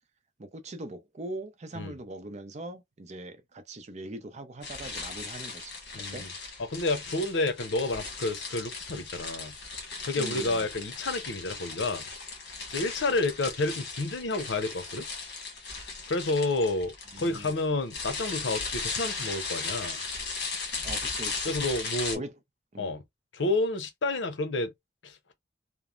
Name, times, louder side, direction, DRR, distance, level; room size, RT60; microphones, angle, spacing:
voice 1, 0.4-5.8 6.1-6.3 10.2-10.6 17.1-17.5 20.8-21.5 22.1-22.3 22.7-22.9, right 2 dB, 40° right, 0.6 m, -41 dB
sound 1, 4.6-22.2, left 4 dB, 60° left, 1.2 m, -37 dB
voice 2, 5.9-6.3 6.6-9.5 10.0-12.0 12.7-15.1 16.1-20.0 21.4-22.2 22.8-23.0 23.3-24.7 25.0-25.3, left 2 dB, 80° left, 0.7 m, -30 dB
3.1 x 2.0 x 2.4 m
head